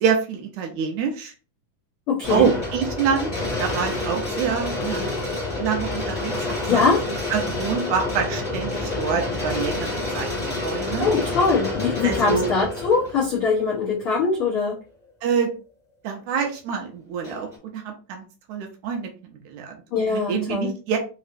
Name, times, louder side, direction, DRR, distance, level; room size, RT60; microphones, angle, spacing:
voice 1, 0.0-1.3 2.3-3.3 3.6-5.1 5.6-6.3 6.7-6.9 7.3-9.9 10.1-10.3 10.6-11.1 12.0-12.5 15.2-15.5 16.0-18.2 18.5-19.1 19.5-19.8 20.1-21.0, right 6 dB, 75° right, 3 dB, 1.9 m, -26 dB
voice 2, 2.1-2.5 6.7-7.0 11.0-14.8 19.9-20.7, left 4 dB, 85° left, -4 dB, 1.2 m, -22 dB
sound 1, 2.2-14.3 14.9-15.0 17.2-17.6, left 2 dB, 15° left, 1.4 m, -28 dB
5.5 x 3.0 x 2.5 m, 0.34 s
omnidirectional pair, 3.8 m